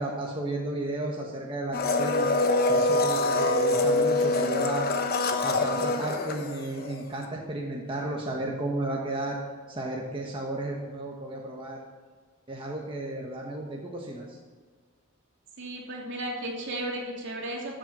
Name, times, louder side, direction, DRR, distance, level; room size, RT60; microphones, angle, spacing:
voice 1, 0.0-2.3 2.7-4.9 5.4-9.4 9.7-11.8 12.5-14.4, right 2 dB, 25° right, -2 dB, 1.4 m, -33 dB
Domestic sounds home sounds, 1.7-7.0 7.2-7.3, left 2 dB, 50° left, 1.0 m, -25 dB
voice 2, 15.6-17.8, right 1 dB, 60° right, -2 dB, 3.0 m, -34 dB
13.5 x 7.7 x 5.5 m, 1.5 s
head